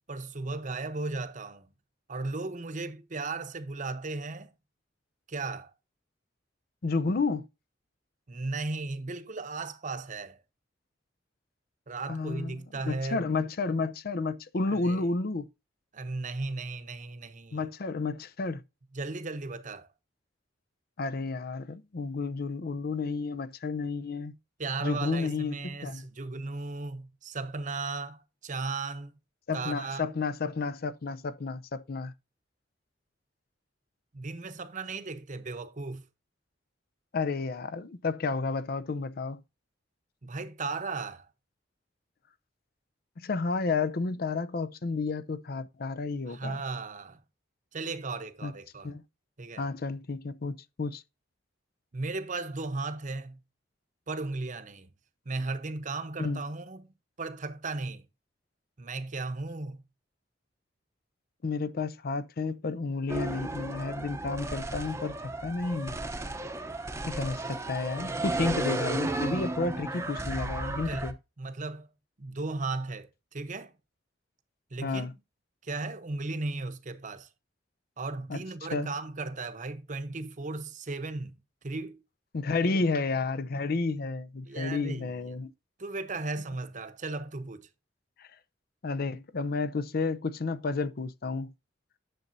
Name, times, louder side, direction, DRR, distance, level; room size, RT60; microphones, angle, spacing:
voice 1, 0.0-1.7 2.1-4.5 5.3-5.7 8.3-10.4 11.9-13.3 14.7-15.1 15.9-17.6 18.9-19.9 24.6-29.1 29.5-30.0 34.1-36.0 40.2-41.3 46.3-47.2 47.7-48.9 49.4-49.7 51.9-53.4 54.1-54.9 55.3-58.0 58.8-59.8 70.9-71.1 71.4-71.9 72.2-73.7 74.7-75.1 75.6-77.3 78.0-81.4 81.6-82.0 82.6-82.7 84.4-85.1 85.8-87.7, right 3 dB, 45° right, 0.9 m, -36 dB
voice 2, 6.8-7.5 12.1-12.5 12.9-15.5 17.5-18.6 21.0-24.3 24.8-26.0 29.5-32.1 37.1-39.4 43.2-46.6 48.4-48.5 48.8-49.0 49.6-51.0 56.2-56.4 61.4-66.0 67.1-71.1 74.8-75.1 78.3-78.4 78.7-78.9 82.3-85.5 88.2-88.3 88.8-91.5, left 3 dB, 55° left, 0.5 m, -31 dB
sound 1, 63.1-71.1, right 2 dB, 15° right, 0.8 m, -34 dB
10.0 x 6.7 x 2.6 m
head